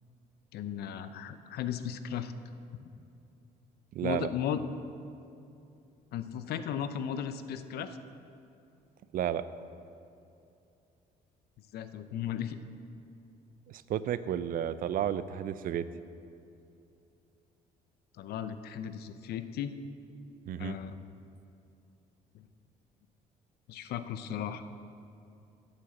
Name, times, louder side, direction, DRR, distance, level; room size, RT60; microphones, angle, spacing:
voice 1, 0.5-2.3 2.8-2.9 4.0-4.6 6.1-8.0 11.7-12.6 18.2-19.7 20.6-21.0 23.7-24.6, left 9 dB, 70° left, 11 dB, 0.6 m, -36 dB
voice 2, 3.9-4.3 9.1-9.4 13.9-15.8 20.5-20.8, right 10 dB, 55° right, 14 dB, 0.4 m, -32 dB
8.6 x 7.8 x 7.1 m, 2.7 s
cardioid pair, 110°, 17 cm